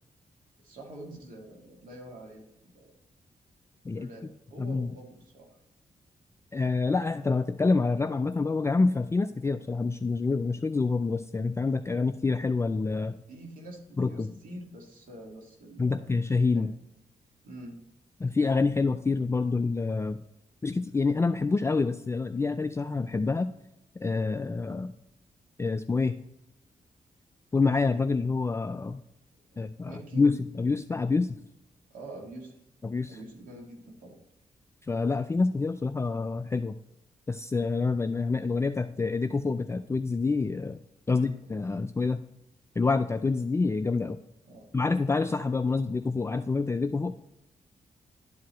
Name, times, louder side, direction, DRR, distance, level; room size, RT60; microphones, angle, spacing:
voice 1, 0.6-2.9 4.0-5.6 13.3-16.1 16.5-16.7 17.4-17.8 29.5-30.2 31.9-32.6 33.1-34.2 41.1-41.4 44.4-44.7, right 1 dB, 90° right, 0 dB, 2.0 m, -46 dB
voice 2, 4.6-4.9 6.5-13.2 14.0-14.3 15.8-16.7 18.2-20.2 20.6-23.5 24.0-24.9 25.6-26.2 27.5-29.0 29.6-31.4 32.8-33.2 34.8-36.8 37.3-40.8 41.1-42.2 42.8-44.2 44.7-47.1, left 4 dB, 20° left, 9 dB, 0.3 m, -27 dB
11.5 x 4.8 x 3.1 m, 0.87 s
cardioid pair, 75°, 14 cm